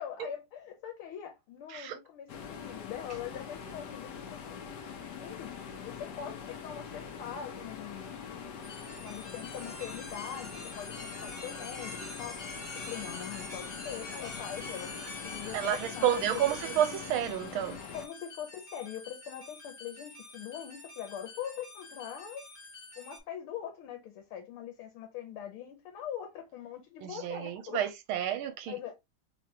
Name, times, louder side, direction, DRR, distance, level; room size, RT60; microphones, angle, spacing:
voice 1, 0.0-4.6 5.2-5.6 5.8-8.2 9.0-12.5 12.7-16.5 17.9-22.4 23.0-27.9 28.6-29.0, left 9 dB, 80° left, 1.7 m, -42 dB
sound 1, 2.3-18.1, left 7 dB, 65° left, 1.2 m, -43 dB
sound 2, 8.6-23.2, left 2 dB, 25° left, 1.0 m, -45 dB
voice 2, 15.5-17.8 27.0-28.8, right 10 dB, 85° right, 1.5 m, -30 dB
3.7 x 3.3 x 2.7 m
omnidirectional pair, 2.3 m